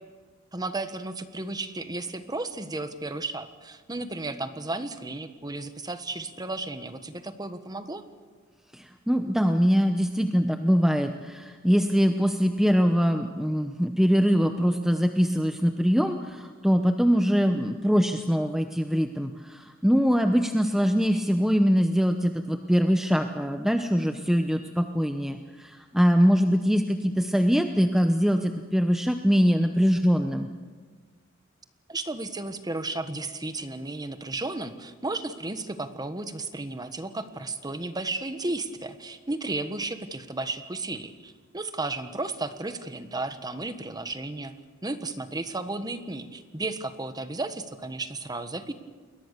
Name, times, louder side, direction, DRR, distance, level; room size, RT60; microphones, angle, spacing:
voice 1, 0.5-8.0 31.9-44.5 44.8-48.7, right 2 dB, 20° right, 10 dB, 1.4 m, -34 dB
voice 2, 8.7-30.5, equal, ahead, 6 dB, 0.9 m, -23 dB
29.0 x 22.0 x 6.8 m, 1.5 s
head